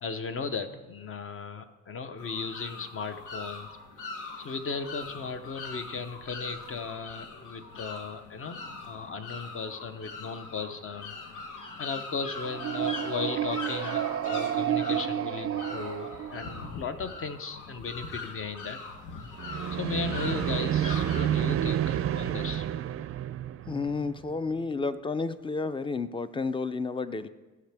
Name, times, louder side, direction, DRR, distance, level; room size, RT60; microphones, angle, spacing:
voice 1, 0.0-3.7 4.4-8.6 8.8-11.1 11.8-18.8 19.7-22.7, left 4 dB, 45° left, 9 dB, 0.8 m, -36 dB
sound 1, 2.2-21.2, left 3 dB, 85° left, 1.1 m, -42 dB
sound 2, 12.5-16.8 19.4-24.4, right 11 dB, 50° right, 0.4 m, -30 dB
voice 2, 23.7-27.3, left 4 dB, 15° left, 13 dB, 0.4 m, -31 dB
14.5 x 5.9 x 3.5 m, 1.2 s
cardioid pair, 90°, 30 cm